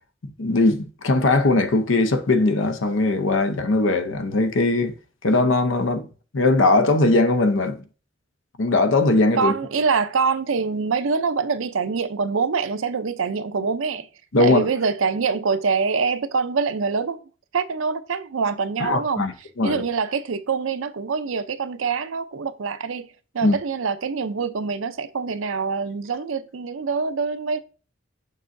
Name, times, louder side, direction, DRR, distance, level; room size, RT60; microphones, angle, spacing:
voice 1, 0.4-4.9 5.2-6.1 6.3-7.8 8.6-9.5 14.3-14.7 18.8-19.3 19.6-19.8 23.4-23.6, left 2 dB, 75° left, 0.7 m, -19 dB
voice 2, 9.4-14.1 14.4-17.2 17.5-19.3 19.6-23.1 23.3-27.6, right 5 dB, 85° right, 0.6 m, -25 dB
6.6 x 6.2 x 2.6 m
head